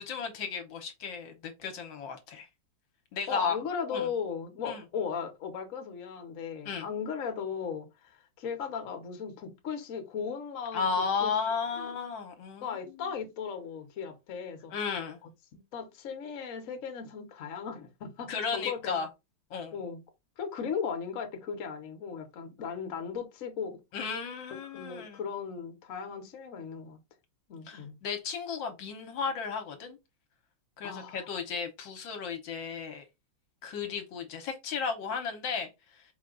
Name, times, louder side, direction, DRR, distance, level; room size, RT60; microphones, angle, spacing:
voice 1, 0.0-2.5 3.1-3.6 3.9-4.1 4.6-4.8 6.6-6.9 10.7-12.8 14.7-15.2 18.3-19.1 19.5-19.8 23.9-25.2 27.7-30.0 30.8-33.0 33.6-36.0, left 5 dB, 70° left, 1.4 m, -34 dB
voice 2, 3.3-10.9 11.2-11.3 11.8-11.9 12.6-14.7 15.5-19.0 19.7-20.0 20.4-23.8 24.5-27.0 27.5-27.9 30.8-31.2, left 6 dB, 55° left, 1.0 m, -37 dB
4.9 x 2.2 x 3.7 m
omnidirectional pair, 2.3 m